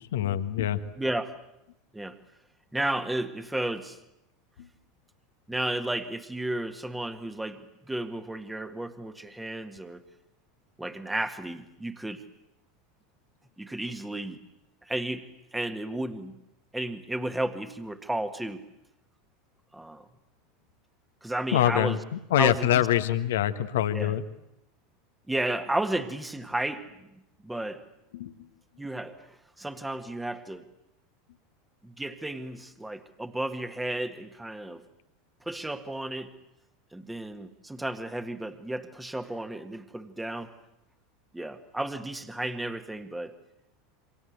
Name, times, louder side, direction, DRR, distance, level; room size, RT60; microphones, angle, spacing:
voice 1, 0.0-0.8 21.5-22.0 22.3-24.2 28.1-28.3, left 12 dB, 65° left, 11 dB, 1.5 m, -24 dB
voice 2, 1.0-1.4 1.9-2.2 2.7-4.0 5.5-10.0 10.8-12.2 13.6-14.4 14.8-16.4 16.7-18.6 19.7-20.1 21.2-22.0 22.4-22.9 23.9-24.2 25.3-26.9 27.4-27.8 28.8-30.6 31.8-34.9 35.5-36.4 36.9-40.5 41.3-43.4, right 1 dB, 5° right, 9 dB, 1.8 m, -33 dB
28.0 x 25.5 x 8.0 m, 0.85 s
figure-of-eight pair, 80°, 0 cm